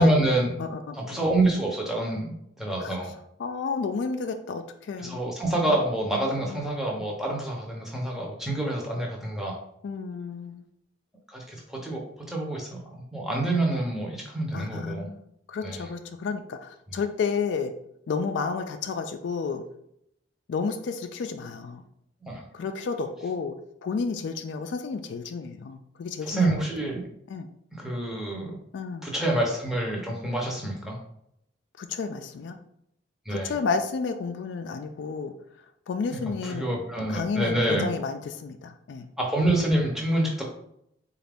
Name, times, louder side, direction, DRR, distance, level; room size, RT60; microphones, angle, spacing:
voice 1, 0.0-0.5 0.9-3.2 5.0-9.6 11.3-15.1 15.6-15.8 22.2-22.4 26.2-27.1 27.8-28.6 29.0-31.0 33.3-33.5 36.1-37.9 39.2-40.5, right 1 dB, ahead, -2 dB, 0.7 m, -27 dB
voice 2, 0.6-1.2 2.8-2.9 3.4-5.2 5.5-5.8 6.5-6.6 9.8-10.7 14.5-15.2 15.5-17.7 18.1-19.6 20.5-21.8 22.5-23.5 23.8-26.5 27.3-27.5 28.7-29.0 31.8-32.6 33.3-35.3 35.9-36.8 37.1-39.1, left 5 dB, 70° left, 8 dB, 0.3 m, -31 dB
3.9 x 2.4 x 3.4 m, 0.75 s
head